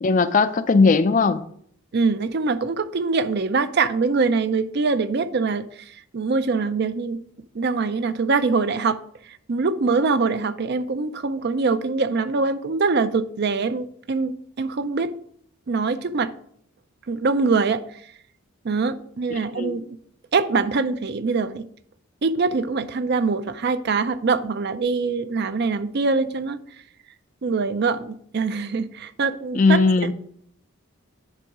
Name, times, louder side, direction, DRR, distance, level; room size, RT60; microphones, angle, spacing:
voice 1, 0.0-1.4 19.6-19.7 29.5-30.1, left 4 dB, 35° left, 0.4 m, -18 dB
voice 2, 1.9-7.2 7.5-15.1 15.7-16.3 17.1-17.8 18.6-20.0 20.3-21.7 22.2-26.6 27.4-30.1, right 4 dB, 50° right, 0.4 m, -23 dB
10.0 x 3.5 x 4.8 m
head